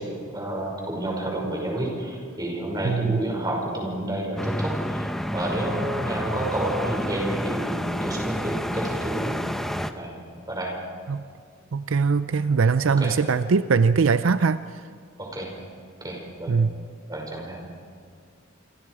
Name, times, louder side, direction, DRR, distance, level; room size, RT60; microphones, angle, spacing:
voice 1, 0.0-5.0 5.3-9.4 9.9-10.1 10.5-10.7 13.0-13.1 15.2-15.5 16.0-16.5 17.1-17.6, right 1 dB, 20° right, -1 dB, 5.8 m, -30 dB
voice 2, 2.8-3.2 11.1-11.2 11.7-14.6 16.5-16.7, right 5 dB, 75° right, 13 dB, 0.5 m, -21 dB
sound 1, 4.4-9.9, equal, ahead, 0.9 m, -29 dB
28.0 x 25.5 x 4.9 m, 2.1 s
head